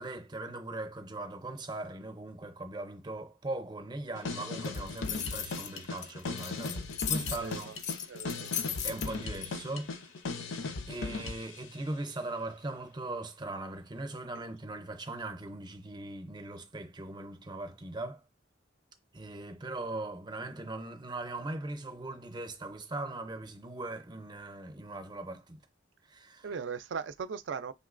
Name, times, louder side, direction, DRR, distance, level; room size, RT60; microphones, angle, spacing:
voice 1, 0.0-7.7 8.8-10.1 10.9-18.2 19.1-25.6 26.1-26.5, right 2 dB, 25° right, 0.6 m, -40 dB
sound 1, 4.1-11.6, left 3 dB, 85° left, 0.6 m, -38 dB
sound 2, 4.6-9.5, left 8 dB, 40° left, 0.3 m, -36 dB
voice 2, 7.3-7.8 8.1-8.5 14.3-14.4 26.4-27.7, right 6 dB, 70° right, 0.4 m, -39 dB
5.5 x 3.0 x 2.5 m
head